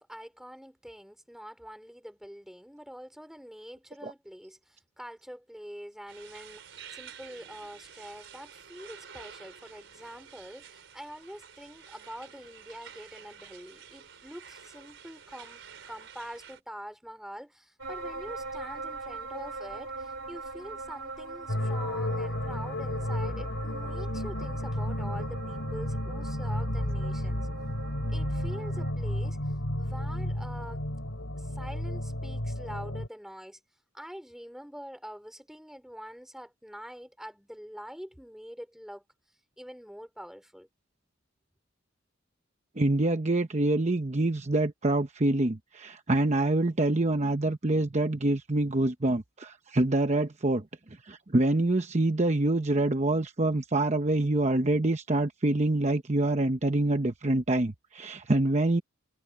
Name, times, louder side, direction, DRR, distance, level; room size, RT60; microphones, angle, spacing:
voice 1, 0.0-27.5 28.1-29.4 29.8-30.8 31.4-33.6 33.9-39.0 39.6-40.7, equal, ahead, 4.1 m, -45 dB
sound 1, 6.1-16.6, right 7 dB, 65° right, 4.6 m, -50 dB
sound 2, 17.8-28.9, right 3 dB, 85° right, 3.6 m, -41 dB
sound 3, 21.5-33.1, left 1 dB, 80° left, 3.4 m, -32 dB
voice 2, 42.8-50.6 51.0-58.8, right 2 dB, 35° right, 0.9 m, -26 dB
head